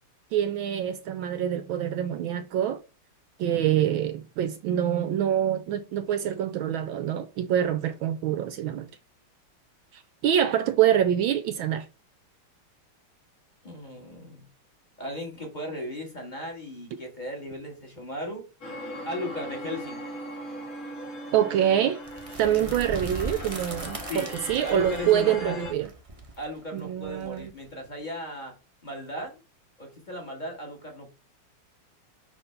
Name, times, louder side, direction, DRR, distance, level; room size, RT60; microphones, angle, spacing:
voice 1, 0.3-2.8 3.4-8.9 9.9-11.9 21.3-22.0 22.4-25.9 26.7-27.5, right 10 dB, 75° right, 1.3 m, -25 dB
voice 2, 13.6-14.4 15.0-18.5 19.0-20.0 24.1-24.3 24.6-25.6 26.4-28.5 28.8-29.4 29.8-31.1, left 1 dB, 20° left, 1.7 m, -36 dB
sound 1, 18.6-25.7, equal, 55° left, 2.6 m, -39 dB
sound 2, 22.0-27.9, right 2 dB, 45° right, 0.4 m, -39 dB
5.8 x 3.1 x 5.7 m
omnidirectional pair, 2.4 m